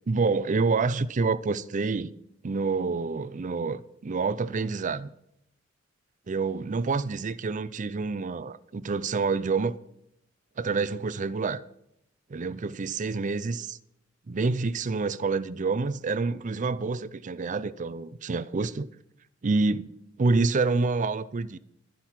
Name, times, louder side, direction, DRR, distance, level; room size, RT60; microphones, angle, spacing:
voice 1, 0.1-2.1 2.4-5.1 6.3-9.8 10.6-11.6 12.3-13.8 14.3-18.9 19.4-19.9 20.2-21.6, right 4 dB, 40° right, 0.5 m, -27 dB
12.5 x 10.5 x 5.8 m
head